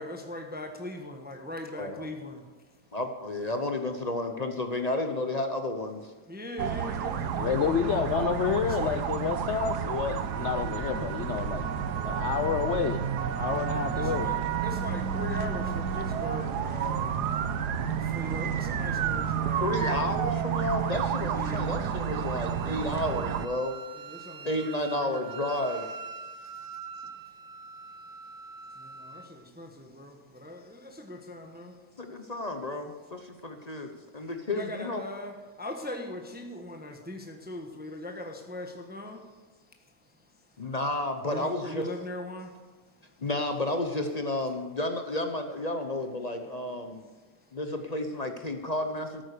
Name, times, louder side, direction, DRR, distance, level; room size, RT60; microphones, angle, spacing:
voice 1, 0.0-2.5 6.3-7.9 8.6-9.0 13.9-17.2 17.8-19.7 21.3-21.9 23.9-25.3 26.4-27.1 28.7-32.2 34.5-39.4 41.3-42.6, left 1 dB, 5° right, 3 dB, 1.0 m, -40 dB
voice 2, 2.9-6.1 19.6-23.7 24.4-26.0 32.0-35.0 40.6-41.9 43.2-47.0 47.5-49.2, left 1 dB, 35° left, 6 dB, 0.6 m, -31 dB
sound 1, 6.6-23.5, right 8 dB, 75° right, 1.3 m, -30 dB
voice 3, 7.4-11.7 12.0-13.0 13.4-14.3, left 7 dB, 75° left, 8 dB, 0.6 m, -29 dB
Wind instrument woodwind instrument, 21.1-29.3, right 5 dB, 55° right, 0.5 m, -44 dB
13.0 x 9.2 x 6.7 m, 1.3 s
omnidirectional pair, 1.8 m